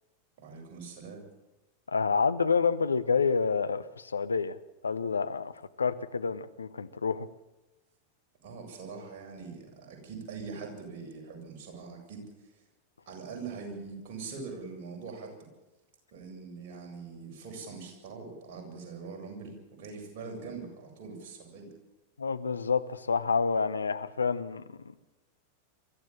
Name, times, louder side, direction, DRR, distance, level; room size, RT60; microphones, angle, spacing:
voice 1, 0.4-1.2 8.4-12.5 13.1-15.5 16.1-21.7, right 4 dB, 45° right, 1 dB, 7.6 m, -43 dB
voice 2, 1.9-4.6 4.8-7.3 22.2-25.0, left 5 dB, 75° left, 13 dB, 0.9 m, -28 dB
24.0 x 14.5 x 7.4 m, 1.0 s
figure-of-eight pair, 90°, 0 cm